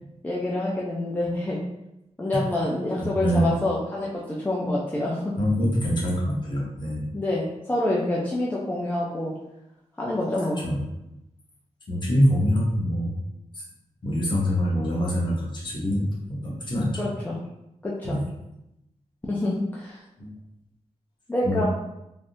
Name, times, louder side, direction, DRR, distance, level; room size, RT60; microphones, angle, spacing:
voice 1, 0.2-1.6 2.2-5.3 7.1-9.3 10.0-10.6 17.0-17.4 17.8-18.2 19.3-20.0 21.3-21.6, left 1 dB, 15° left, -5 dB, 0.4 m, -27 dB
voice 2, 3.0-3.5 5.4-7.0 10.6-10.8 11.9-13.1 14.0-16.9 18.0-18.2 20.2-20.3 21.4-21.6, equal, 40° left, -5 dB, 0.9 m, -24 dB
3.4 x 2.5 x 2.6 m, 0.87 s
wide cardioid pair, 155°, 12 cm